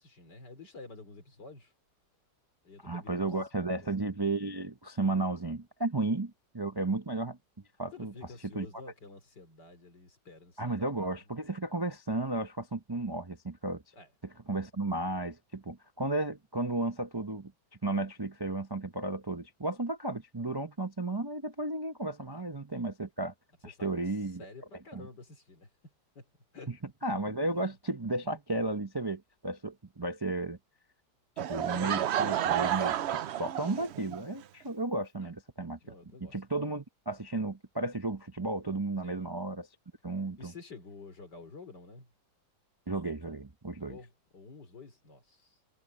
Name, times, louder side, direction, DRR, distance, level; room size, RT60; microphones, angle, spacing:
voice 1, 0.0-1.7 2.6-3.9 7.9-10.9 11.1-11.5 13.9-14.1 22.3-22.4 23.8-24.1 24.4-26.7 27.5-27.7 35.2-35.3 35.8-36.4 39.0-39.3 40.4-42.1 43.8-45.5, left 3 dB, 75° left, 4.4 m, -50 dB
voice 2, 2.8-7.4 7.8-8.1 8.5-8.8 10.6-13.8 14.2-17.5 17.8-23.3 23.6-24.5 24.9-25.1 26.7-26.8 27.0-30.6 31.4-35.8 36.2-39.7 40.0-40.5 42.9-44.0, right 2 dB, 25° right, 0.6 m, -34 dB
Laughter / Crowd, 31.4-34.2, right 10 dB, 85° right, 0.5 m, -30 dB
omnidirectional pair, 1.8 m